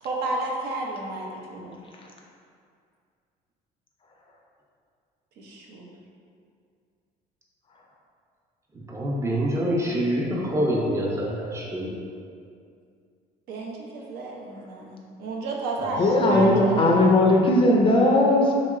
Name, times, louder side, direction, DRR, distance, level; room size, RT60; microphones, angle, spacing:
voice 1, 0.0-1.8 5.4-5.9 13.5-17.1, right 2 dB, 70° right, -1 dB, 0.5 m, -32 dB
voice 2, 8.9-11.9 15.8-15.9 16.3-17.0, equal, 15° right, -3 dB, 0.5 m, -26 dB
voice 3, 16.0-18.5, left 1 dB, 30° left, 0 dB, 0.4 m, -18 dB
3.0 x 2.8 x 2.4 m, 2.3 s
cardioid pair, 110°, 17 cm